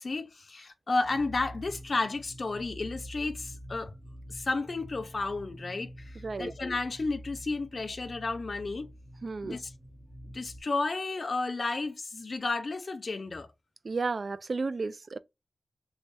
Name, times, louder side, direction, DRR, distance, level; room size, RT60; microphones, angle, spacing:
voice 1, 0.0-3.9 4.3-8.9 9.4-9.7 10.3-13.5, left 3 dB, 55° left, 0.6 m, -32 dB
sound 1, 1.0-10.6, equal, ahead, 1.8 m, -47 dB
voice 2, 9.2-9.6 13.8-15.2, right 4 dB, 60° right, 0.3 m, -32 dB
3.2 x 2.7 x 3.2 m
wide cardioid pair, 65°, 0 cm